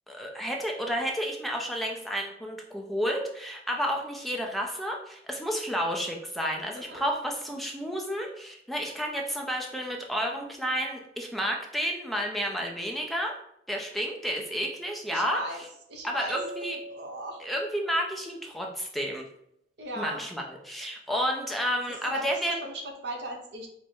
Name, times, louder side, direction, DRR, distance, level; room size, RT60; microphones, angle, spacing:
voice 1, 0.1-13.3 13.7-15.7 16.0-16.8 17.4-19.3 20.0-22.6, equal, ahead, 0 dB, 0.4 m, -31 dB
voice 2, 15.1-15.6 15.9-16.4 16.9-17.4 19.8-20.2 22.0-23.7, right 1 dB, 75° right, 1 dB, 0.9 m, -38 dB
sound 1, 16.3-18.2, right 2 dB, 45° right, 0.7 m, -42 dB
4.6 x 2.1 x 4.4 m, 0.74 s
head